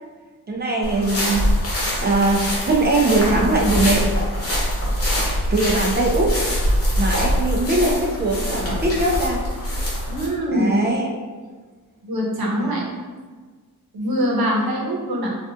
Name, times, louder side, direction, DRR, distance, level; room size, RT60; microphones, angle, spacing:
voice 1, 0.5-1.4 2.0-4.1 5.5-6.3 7.0-9.4 10.5-11.1 12.6-13.0, right 2 dB, 25° right, -1 dB, 0.6 m, -21 dB
sound 1, 0.8-10.3, equal, 40° left, 1.1 m, -23 dB
voice 2, 10.1-10.7 12.0-12.8 13.9-15.3, equal, 80° right, -3 dB, 0.9 m, -23 dB
3.9 x 2.5 x 2.5 m, 1.4 s
wide cardioid pair, 105°, 37 cm